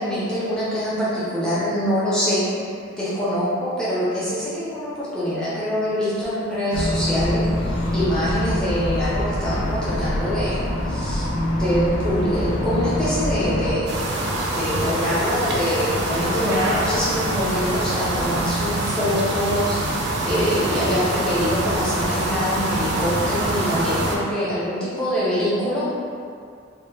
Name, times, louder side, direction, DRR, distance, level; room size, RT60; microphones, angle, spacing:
voice 1, 0.0-2.5 2.9-11.3 11.5-14.0 14.4-25.9, equal, 5° left, -11 dB, 0.6 m, -24 dB
sound 1, 6.7-13.7, left 1 dB, 75° left, 0.5 m, -24 dB
sound 2, 13.9-24.2, right 1 dB, 55° right, 0.3 m, -24 dB
2.1 x 2.1 x 3.2 m, 2.3 s
head